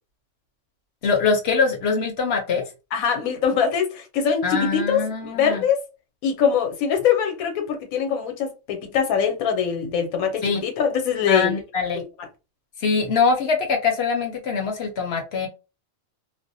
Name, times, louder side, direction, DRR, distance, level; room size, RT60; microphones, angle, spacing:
voice 1, 1.0-2.6 4.4-5.6 10.4-10.6 11.3-12.0 12.8-15.5, left 5 dB, 60° left, 0.8 m, -23 dB
voice 2, 2.9-5.9 6.2-11.6, left 7 dB, 85° left, 1.1 m, -23 dB
2.4 x 2.0 x 2.6 m
omnidirectional pair, 1.4 m